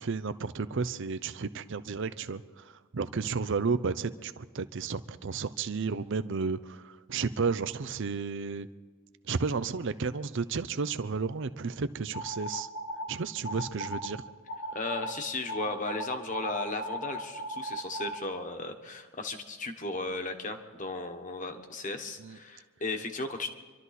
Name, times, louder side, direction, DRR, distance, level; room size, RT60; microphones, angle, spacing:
voice 1, 0.0-8.7 9.2-12.7 13.1-14.2 22.2-22.4, right 5 dB, 60° right, 13 dB, 0.6 m, -32 dB
sound 1, 12.1-13.1 13.4-14.1 14.5-15.1 15.5-18.2, equal, 75° left, 2.5 m, -36 dB
voice 2, 14.7-23.5, left 3 dB, 35° left, 6 dB, 1.3 m, -35 dB
26.0 x 12.5 x 4.1 m, 1.5 s
head